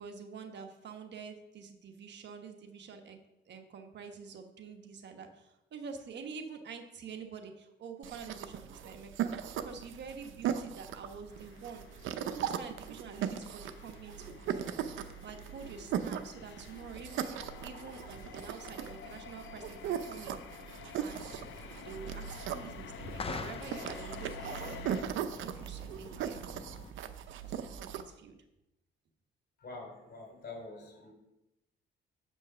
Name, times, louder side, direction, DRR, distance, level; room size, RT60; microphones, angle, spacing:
voice 1, 0.0-3.2 3.4-11.8 12.3-14.7 15.2-20.4 21.0-21.4 21.8-26.5 27.4-28.4, right 5 dB, 65° right, 5 dB, 1.2 m, -47 dB
sound 1, 8.0-28.0, right 9 dB, 80° right, 0.7 m, -39 dB
sound 2, 11.3-25.0, left 8 dB, 75° left, 0.7 m, -50 dB
sound 3, 21.2-26.9, left 5 dB, 30° left, 0.6 m, -46 dB
voice 2, 29.6-31.1, left 3 dB, 50° left, 1 dB, 3.5 m, -46 dB
7.7 x 5.3 x 6.2 m, 0.91 s
cardioid pair, 90°, 20 cm